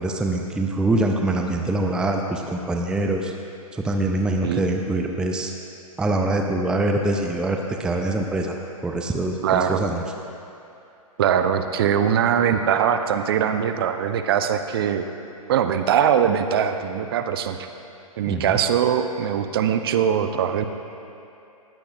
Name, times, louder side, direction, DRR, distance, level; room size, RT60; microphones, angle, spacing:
voice 1, 0.0-3.3 3.7-5.5 6.0-8.6 8.8-10.0 18.3-18.6, right 2 dB, 5° right, 2 dB, 0.5 m, -24 dB
voice 2, 9.4-9.8 11.2-15.0 15.5-17.6 18.2-20.7, right 8 dB, 40° right, 8 dB, 0.8 m, -21 dB
19.5 x 16.0 x 2.5 m, 2.7 s
figure-of-eight pair, 115°, 18 cm